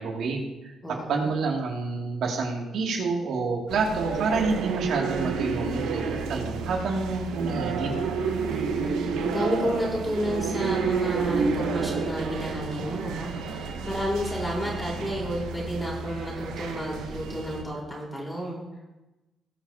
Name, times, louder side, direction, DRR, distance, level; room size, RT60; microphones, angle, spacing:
voice 1, 0.0-7.9, right 4 dB, 75° right, -1 dB, 2.4 m, -28 dB
voice 2, 0.8-1.3 3.8-3.9 8.5-18.6, equal, 10° left, -4 dB, 4.2 m, -31 dB
sound 1, 3.7-17.6, right 5 dB, 90° right, 1.1 m, -30 dB
20.0 x 7.0 x 2.8 m, 1.0 s
cardioid pair, 90°, 0 cm